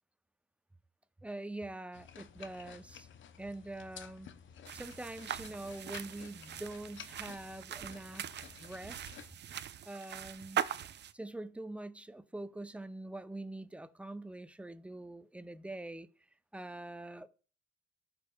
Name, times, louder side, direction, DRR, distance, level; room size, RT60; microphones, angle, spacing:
voice 1, 1.2-3.1 3.4-4.3 4.7-8.3 8.6-9.1 9.9-10.6 11.1-16.1 16.5-17.3, right 2 dB, 5° right, 0.6 m, -44 dB
sound 1, 1.9-9.3, left 8 dB, 65° left, 0.6 m, -53 dB
sound 2, 4.7-11.1, right 10 dB, 55° right, 0.5 m, -41 dB
14.0 x 5.2 x 2.3 m
cardioid pair, 70°, 21 cm